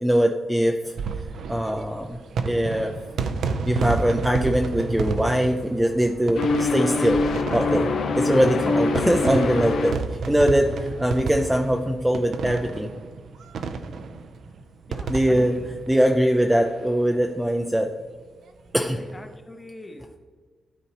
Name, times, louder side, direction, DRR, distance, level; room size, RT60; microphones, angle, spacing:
voice 1, 0.0-0.9 1.5-2.2 2.5-2.9 3.7-7.2 7.5-7.9 8.2-12.9 15.1-15.6 15.9-17.9 18.7-19.0, equal, 5° right, 3 dB, 0.4 m, -22 dB
sound 1, 0.8-16.9 17.2-17.3 17.5-17.6 18.9-19.1, right 4 dB, 70° right, 0.5 m, -31 dB
sound 2, 6.3-10.0, left 3 dB, 80° left, 0.8 m, -24 dB
voice 2, 14.9-15.7 18.9-20.2, left 1 dB, 15° left, 5 dB, 0.8 m, -42 dB
12.5 x 4.2 x 2.9 m, 1.5 s
wide cardioid pair, 130°, 0 cm